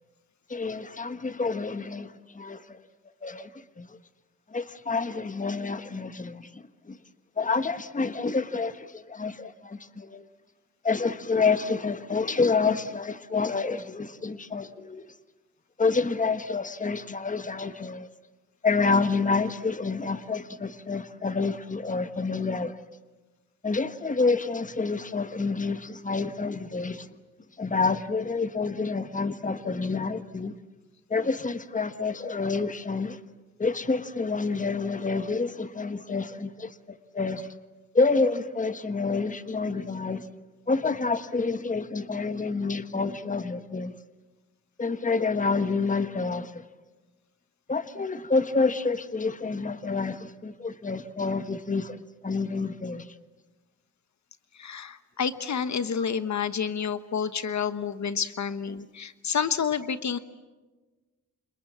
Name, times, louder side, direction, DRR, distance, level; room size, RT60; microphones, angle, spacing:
voice 1, 0.5-2.8 3.2-4.0 4.5-7.0 7.4-10.2 10.8-15.1 15.8-18.1 18.6-22.8 23.6-27.1 27.6-30.5 31.1-33.2 33.6-37.5 37.9-40.3 40.7-43.9 44.8-46.6 47.7-53.1, left 4 dB, 25° left, 1.4 m, -28 dB
voice 2, 54.5-60.2, left 7 dB, 65° left, 1.2 m, -29 dB
29.0 x 27.0 x 7.5 m
wide cardioid pair, 125°, 31 cm